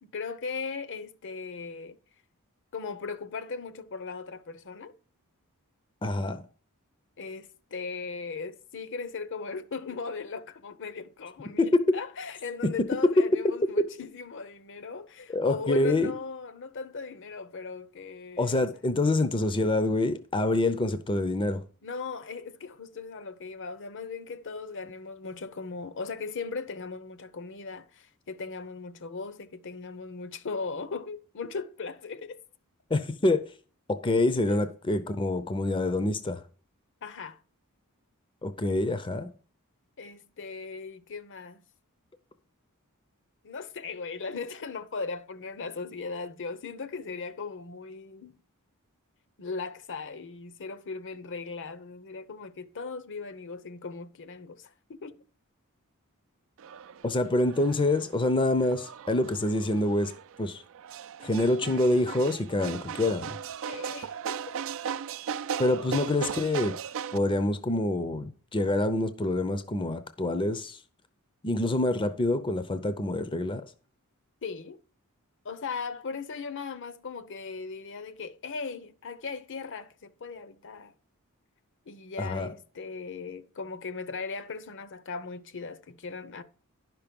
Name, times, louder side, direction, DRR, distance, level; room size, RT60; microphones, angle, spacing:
voice 1, 0.0-2.0 2.7-4.9 7.2-18.7 21.8-32.4 34.5-34.7 37.0-37.4 40.0-41.6 43.4-48.4 49.4-55.2 63.6-64.6 74.4-74.8 75.4-80.9 81.9-86.4, left 4 dB, 60° left, 0.8 m, -38 dB
voice 2, 6.0-6.4 11.6-11.8 13.2-13.3 15.3-16.2 18.4-21.6 32.9-33.4 33.9-36.4 38.4-39.3 57.0-60.1 60.4-60.6 61.2-63.4 65.6-66.7 67.1-70.8 71.4-73.7 82.2-82.5, left 2 dB, 25° left, 0.6 m, -26 dB
sound 1, 56.6-67.2, right 8 dB, 60° right, 0.4 m, -38 dB
10.5 x 5.9 x 5.2 m
head